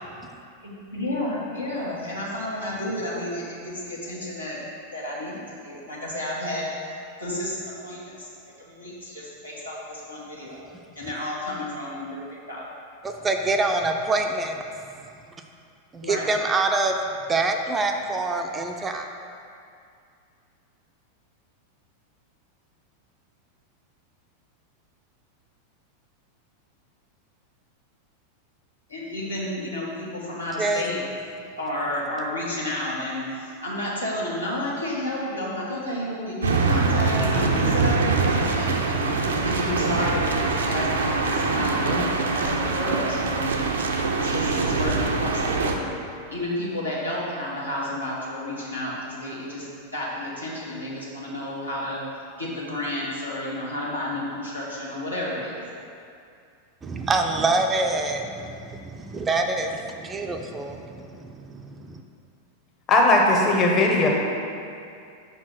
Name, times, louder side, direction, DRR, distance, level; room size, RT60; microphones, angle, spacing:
voice 1, 0.6-4.6 4.9-6.7 7.2-8.3 8.6-10.6 10.9-12.6 16.0-16.3 28.9-31.0 31.6-43.4 44.1-45.9 46.3-52.0 52.4-55.6, left 1 dB, 80° left, -6 dB, 1.5 m, -31 dB
voice 2, 13.0-14.6 15.9-17.0 17.3-19.1 30.6-30.9 56.8-62.0, right 3 dB, 15° right, 4 dB, 0.5 m, -26 dB
sound 1, 36.4-45.7, right 4 dB, 70° right, 0.5 m, -24 dB
voice 3, 62.9-64.1, left 2 dB, 30° left, -1 dB, 0.9 m, -18 dB
5.6 x 4.5 x 5.9 m, 2.4 s
figure-of-eight pair, 90°, 0 cm